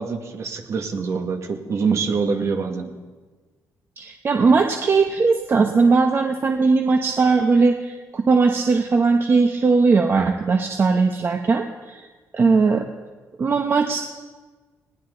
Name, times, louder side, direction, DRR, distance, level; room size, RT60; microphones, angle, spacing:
voice 1, 0.0-3.0, right 5 dB, 55° right, 4 dB, 2.1 m, -25 dB
voice 2, 4.0-12.0 12.3-12.8 13.4-14.0, right 4 dB, 40° right, 4 dB, 1.2 m, -19 dB
20.0 x 18.0 x 4.0 m, 1.3 s
cardioid pair, 105°, 6 cm